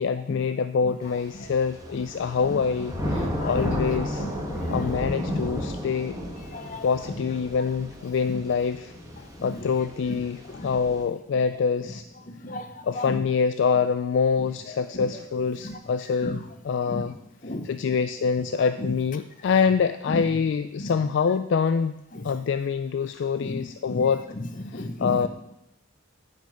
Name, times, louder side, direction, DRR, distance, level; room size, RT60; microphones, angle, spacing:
voice 1, 0.0-4.3 4.7-6.1 6.8-8.9 9.4-12.0 12.8-17.1 17.6-24.2 24.7-25.3, left 6 dB, 60° left, 11 dB, 0.3 m, -25 dB
Thunder / Rain, 1.1-11.0, left 1 dB, 15° right, 1.5 m, -33 dB
voice 2, 2.4-3.7 4.0-4.3 4.6-5.0 5.3-5.6 6.4-7.1 8.2-8.4 9.4-9.7 10.1-11.0 11.8-11.9 12.3-13.2 14.4-15.1 15.6-15.8 16.2-16.4 16.9-17.1 17.4-18.0 18.8-18.9 20.1-20.2 20.8-20.9 21.3-21.4 22.1-22.3 23.4-25.3, left 1 dB, 40° left, 8 dB, 0.9 m, -36 dB
9.0 x 5.3 x 7.5 m, 0.87 s
head